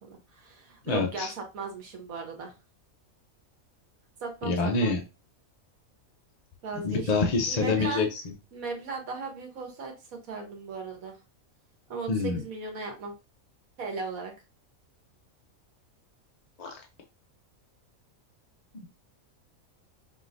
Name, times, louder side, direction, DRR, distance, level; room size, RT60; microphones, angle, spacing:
voice 1, 0.0-2.5 4.2-4.9 6.6-8.1 8.5-11.2 11.9-13.1 13.8-14.3, right 4 dB, 80° right, 2 dB, 1.6 m, -37 dB
voice 2, 0.9-1.3 4.5-5.0 6.8-8.1 12.1-12.4 16.6-16.7, left 3 dB, 45° left, 2 dB, 0.5 m, -26 dB
5.6 x 3.0 x 2.6 m, 0.28 s
omnidirectional pair, 1.4 m